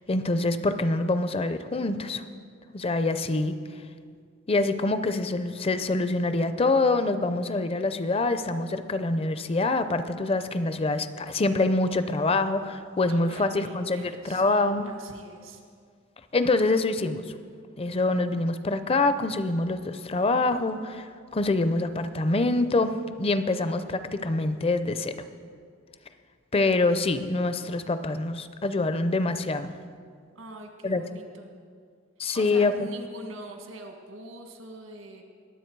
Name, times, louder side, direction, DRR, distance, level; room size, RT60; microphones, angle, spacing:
voice 1, 0.1-2.2 2.7-3.6 4.5-14.9 16.3-17.2 17.8-25.2 26.5-29.7 30.8-31.2 32.2-32.9, left 2 dB, 30° left, 11 dB, 0.5 m, -25 dB
voice 2, 13.1-15.6 30.3-31.5 32.3-35.2, right 1 dB, 85° right, 4 dB, 1.6 m, -44 dB
21.5 x 7.9 x 4.6 m, 2.1 s
head